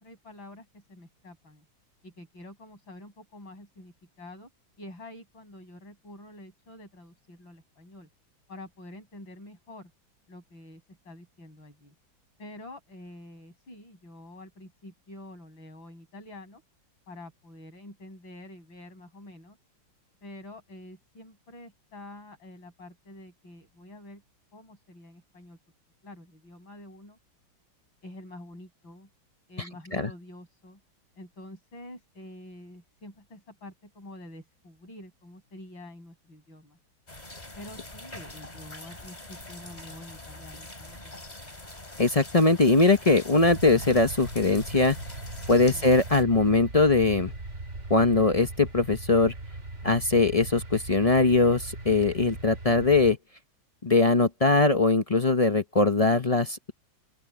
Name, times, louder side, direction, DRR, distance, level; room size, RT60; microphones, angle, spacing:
voice 1, 0.0-1.6 2.0-4.5 4.8-8.1 8.5-9.9 10.3-11.9 12.4-16.6 17.1-19.6 20.2-24.2 24.5-25.6 26.0-27.2 28.0-29.1 29.5-30.8 31.2-36.8 37.6-41.0 45.7-45.9, left 1 dB, 75° left, 8.9 m, -47 dB
sound 1, 37.1-46.2, left 2 dB, 20° left, 3.1 m, -44 dB
voice 2, 42.0-45.0 45.5-47.3 47.9-49.3 49.8-53.2 53.8-56.7, left 3 dB, 35° left, 0.5 m, -21 dB
sound 2, 43.4-53.1, right 2 dB, 35° right, 3.1 m, -39 dB
open air
omnidirectional pair, 2.1 m